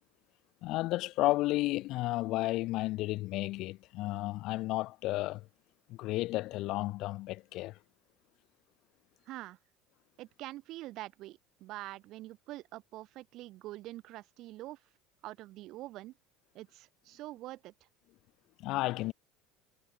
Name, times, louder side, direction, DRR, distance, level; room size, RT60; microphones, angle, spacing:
voice 1, 0.6-5.4 5.9-7.8 18.6-19.1, left 18 dB, 55° left, 0.8 m, -32 dB
voice 2, 9.3-9.6 10.2-14.8 15.2-16.1 16.5-17.7, right 17 dB, 55° right, 1.3 m, -45 dB
cardioid pair, 135°, 0 cm